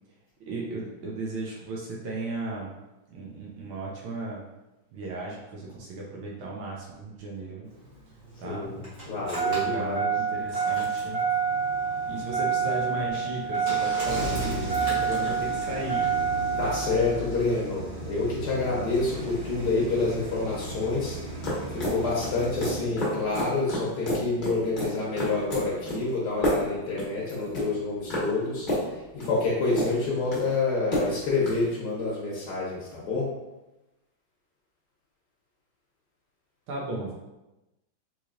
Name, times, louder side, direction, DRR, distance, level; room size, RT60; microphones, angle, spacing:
voice 1, 0.4-2.7 3.1-4.5 4.9-7.7 8.4-8.7 9.0-9.2 9.5-11.2 12.1-16.1 36.7-37.1, right 2 dB, 85° right, -3 dB, 1.5 m, -35 dB
Engine starting, 7.7-22.8, right 5 dB, 45° right, 0.8 m, -29 dB
voice 2, 8.4-8.8 9.1-10.1 16.6-21.2 21.7-33.3, left 3 dB, 65° left, -5 dB, 1.1 m, -28 dB
sound 1, 21.1-31.6, left 1 dB, 45° left, 0.6 m, -31 dB
3.9 x 3.1 x 2.4 m, 1.0 s
omnidirectional pair, 2.3 m